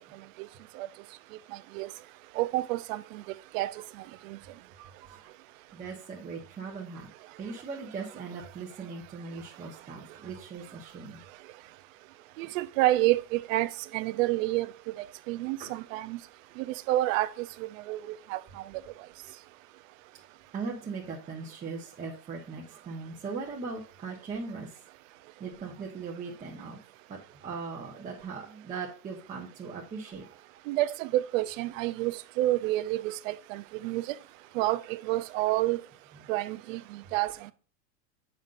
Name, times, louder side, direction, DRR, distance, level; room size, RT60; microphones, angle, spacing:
voice 1, 2.4-3.2 3.5-3.7 4.3-4.4 12.4-14.7 15.3-16.2 16.6-18.4 30.7-34.2 34.6-35.8 36.3-37.3, right 16 dB, 55° right, 0.6 m, -29 dB
voice 2, 4.8-5.3 5.7-7.1 7.4-11.3 12.4-12.5 15.6-15.8 20.5-24.7 25.4-26.8 27.1-30.4, right 4 dB, 15° right, 0.9 m, -39 dB
7.2 x 5.5 x 2.5 m
supercardioid pair, 130°, 48 cm